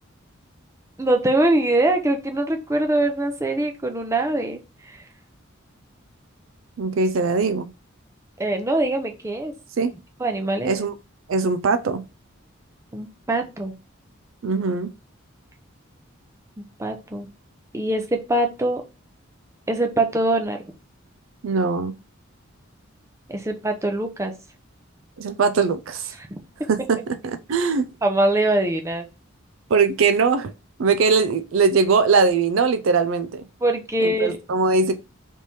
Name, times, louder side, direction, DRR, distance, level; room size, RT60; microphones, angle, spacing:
voice 1, 1.0-5.0 8.4-9.5 10.2-10.7 12.9-13.7 16.6-17.3 17.7-18.8 19.7-20.6 23.3-24.3 26.3-26.4 28.0-29.1 33.6-34.4, right 1 dB, 15° right, 0.6 m, -23 dB
voice 2, 6.8-7.7 9.8-9.9 10.6-10.9 11.3-12.0 14.4-14.9 21.4-21.9 25.2-26.1 26.7-27.9 29.7-30.5 30.8-33.4 34.0-35.0, right 4 dB, 70° right, 0.4 m, -21 dB
3.5 x 3.2 x 4.1 m
head